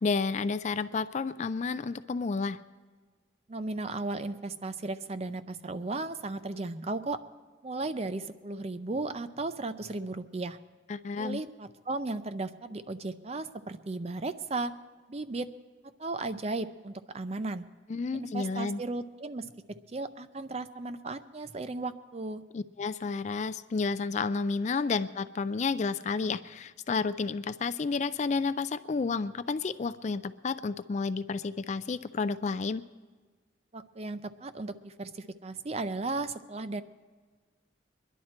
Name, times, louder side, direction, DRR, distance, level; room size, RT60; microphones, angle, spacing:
voice 1, 0.0-2.6 10.9-11.4 17.9-18.8 22.5-32.8, left 4 dB, 35° left, 13 dB, 0.3 m, -31 dB
voice 2, 3.5-7.2 7.6-10.6 11.2-14.7 15.1-15.5 16.0-17.7 18.1-22.4 33.7-36.8, right 2 dB, 30° right, 12 dB, 0.5 m, -35 dB
23.5 x 11.0 x 4.3 m, 1.4 s
head